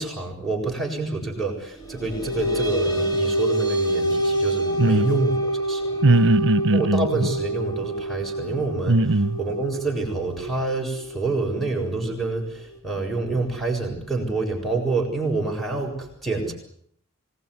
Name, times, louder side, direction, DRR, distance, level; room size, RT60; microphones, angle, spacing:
voice 1, 0.0-5.9 6.7-9.0 9.4-16.5, right 3 dB, ahead, 7.4 m, -27 dB
sound 1, 1.8-12.8, right 1 dB, 20° left, 4.1 m, -27 dB
voice 2, 6.0-7.3 8.9-9.4, right 2 dB, 60° right, 1.1 m, -19 dB
26.0 x 20.5 x 9.8 m
head